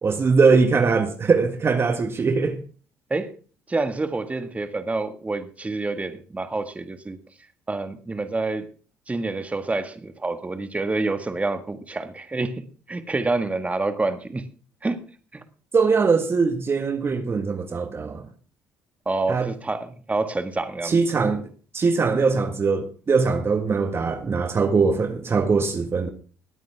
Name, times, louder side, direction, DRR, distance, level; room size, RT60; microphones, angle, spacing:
voice 1, 0.0-2.6 15.7-18.3 19.3-19.5 20.8-21.4 21.7-26.1, right 4 dB, 35° right, 1.7 m, -21 dB
voice 2, 3.7-7.2 7.7-8.7 9.1-14.5 14.8-15.0 15.3-15.4 19.0-21.0, right 3 dB, 20° right, 1.8 m, -27 dB
20.0 x 9.1 x 3.6 m
hypercardioid pair, 65°, 7 cm